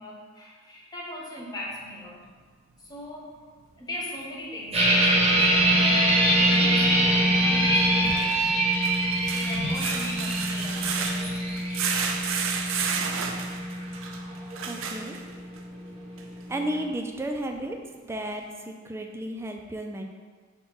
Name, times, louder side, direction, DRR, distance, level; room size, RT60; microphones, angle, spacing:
voice 1, 0.0-2.2 2.9-3.3 3.8-5.9 6.3-8.7 9.3-12.4, equal, 20° left, -3 dB, 0.8 m, -40 dB
sound 1, 4.6-10.9, left 2 dB, 60° left, 0.6 m, -43 dB
sound 2, 4.7-16.9, right 1 dB, 35° right, 0.7 m, -24 dB
sound 3, 5.4-5.5 8.0-15.6 16.2-16.3 16.7-16.8, right 6 dB, 80° right, 0.4 m, -32 dB
voice 2, 14.6-15.2 16.5-17.8 18.0-20.0, right 1 dB, 15° right, 3 dB, 0.3 m, -33 dB
5.4 x 2.2 x 4.3 m, 1.5 s
head